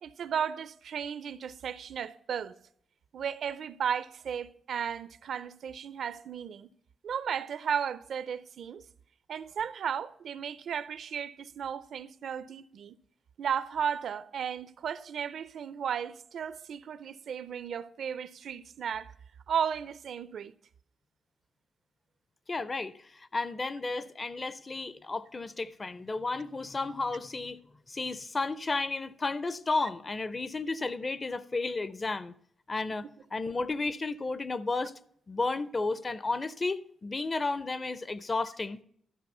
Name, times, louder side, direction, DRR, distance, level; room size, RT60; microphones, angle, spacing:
voice 1, 0.0-2.6 3.1-6.7 7.0-8.8 9.3-12.9 13.4-19.1 19.5-20.5, right 8 dB, 60° right, 0.4 m, -34 dB
voice 2, 22.5-27.6 27.9-32.3 32.7-33.1 33.3-34.9 35.3-38.8, left 3 dB, 25° left, 0.4 m, -33 dB
13.0 x 5.9 x 5.4 m
wide cardioid pair, 145°, 0 cm